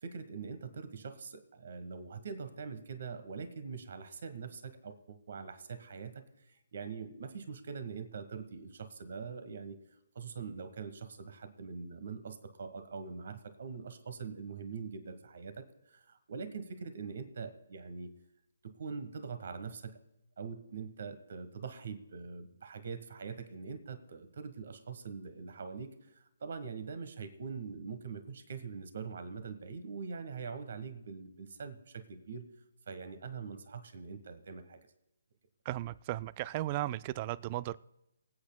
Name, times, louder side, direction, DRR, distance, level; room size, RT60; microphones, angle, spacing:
voice 1, 0.0-9.8 10.1-18.1 18.6-20.0 20.4-26.1 26.4-32.5 32.9-34.8, right 5 dB, 55° right, 11 dB, 1.3 m, -43 dB
voice 2, 35.7-37.8, right 15 dB, 30° right, 20 dB, 0.3 m, -35 dB
25.0 x 8.6 x 2.3 m, 0.89 s
figure-of-eight pair, 145°, 0 cm